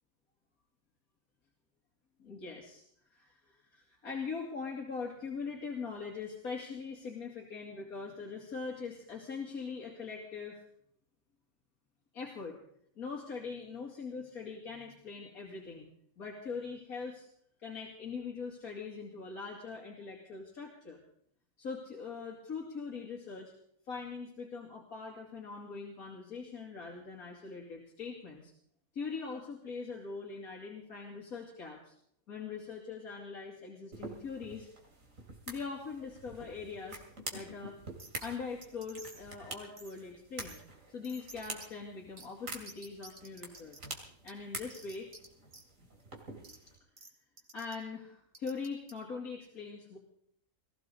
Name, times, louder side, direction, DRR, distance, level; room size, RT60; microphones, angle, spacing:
voice 1, 2.2-2.8 3.1-10.6 12.1-12.6 13.0-15.9 16.2-17.3 17.6-21.0 21.6-23.5 23.9-28.5 28.9-31.9 32.3-34.7 35.5-37.0 37.3-37.7 38.2-40.6 40.9-43.8 44.2-45.1 47.5-50.0, left 5 dB, 85° left, -2 dB, 3.0 m, -42 dB
sound 1, 33.9-46.8, right 2 dB, 65° right, 3.2 m, -47 dB
sound 2, 38.0-38.3 38.6-39.3 39.8-39.9 40.4-40.6 41.0-41.7 42.2-42.3 42.5-43.8 44.3-45.3 45.5-45.6 46.4-46.6 47.0-47.1 47.4-47.7 48.3-48.9, right 2 dB, 45° right, 2.8 m, -51 dB
21.0 x 15.5 x 4.0 m, 0.68 s
omnidirectional pair, 1.5 m